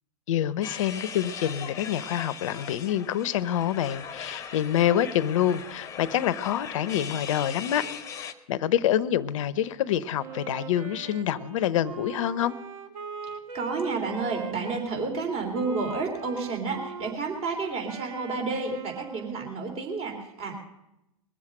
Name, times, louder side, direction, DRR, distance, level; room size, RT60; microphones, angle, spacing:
voice 1, 0.3-7.8 8.2-12.5, left 10 dB, 60° left, 16 dB, 0.8 m, -26 dB
sound 1, 0.6-8.3, left 7 dB, 15° left, 1.1 m, -39 dB
Wind instrument woodwind instrument, 10.2-14.9 15.5-19.5, right 5 dB, 70° right, 1.5 m, -41 dB
voice 2, 13.3-20.6, right 4 dB, 35° right, 3 dB, 3.5 m, -31 dB
21.5 x 7.5 x 6.5 m, 0.88 s
hypercardioid pair, 120°, 18 cm